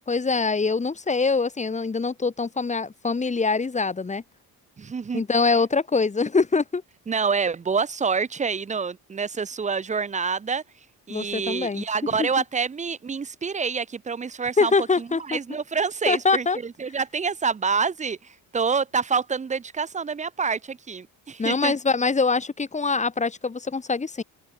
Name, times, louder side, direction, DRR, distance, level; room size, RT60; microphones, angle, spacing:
voice 1, 0.1-4.2 5.1-6.8 11.1-11.8 12.2-12.3 14.6-15.4 16.1-16.6 21.4-24.2, left 4 dB, 20° left, 1.6 m, -24 dB
voice 2, 4.8-5.2 7.1-10.6 11.1-21.7, right 5 dB, 20° right, 0.6 m, -27 dB
open air
cardioid pair, 145°, 37 cm